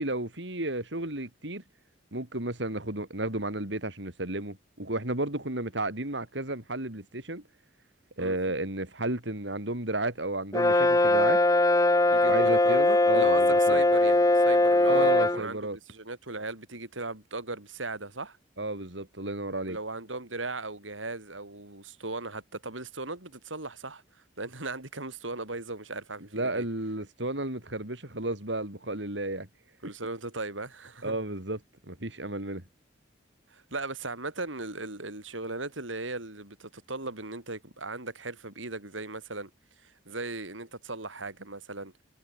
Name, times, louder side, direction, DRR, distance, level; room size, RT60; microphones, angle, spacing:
voice 1, 0.0-1.6 2.1-7.4 8.2-11.4 12.3-13.8 14.9-15.8 18.6-19.8 26.3-29.5 31.0-31.6 31.9-32.6, right 2 dB, 70° right, 4.5 m, -32 dB
Brass instrument, 10.5-15.4, left 2 dB, 20° left, 0.9 m, -21 dB
voice 2, 12.1-12.8 13.1-18.4 19.7-24.0 24.4-26.7 29.8-31.2 33.5-39.5 39.8-41.9, right 3 dB, 90° right, 5.7 m, -37 dB
head